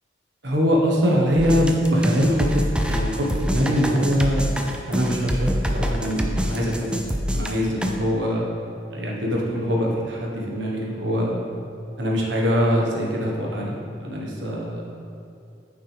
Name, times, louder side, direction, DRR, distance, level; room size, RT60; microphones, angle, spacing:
voice 1, 0.4-4.5 4.8-7.0 7.3-8.4 8.9-11.4 12.0-13.8 14.0-14.8, equal, 80° right, -2 dB, 1.4 m, -23 dB
sound 1, 1.4-7.9, equal, 5° right, 0.4 m, -26 dB
9.3 x 5.6 x 3.5 m, 2.7 s
head